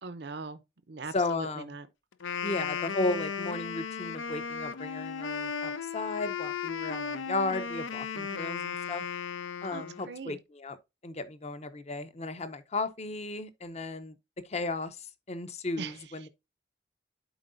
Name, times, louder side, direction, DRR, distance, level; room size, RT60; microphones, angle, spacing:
voice 1, 0.0-0.6 0.9-1.9 8.2-8.4 9.7-10.4 15.8-16.3, right 4 dB, 60° right, 0.6 m, -41 dB
voice 2, 1.1-1.7 2.4-9.0 9.6-10.8 11.0-14.1 14.5-16.3, left 2 dB, 35° left, 0.7 m, -34 dB
Wind instrument woodwind instrument, 2.1-10.2, left 6 dB, 90° left, 0.6 m, -35 dB
11.0 x 4.7 x 2.6 m
head